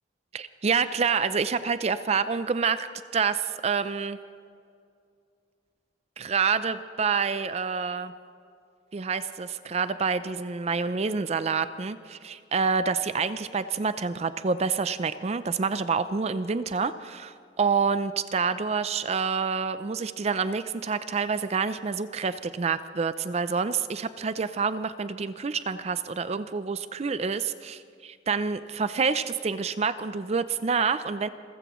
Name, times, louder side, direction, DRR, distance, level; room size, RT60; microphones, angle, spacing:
voice 1, 0.3-2.9 3.1-4.2 6.2-8.1 8.9-31.3, right 5 dB, 35° right, 13 dB, 0.4 m, -27 dB
28.0 x 15.0 x 3.1 m, 2.3 s
head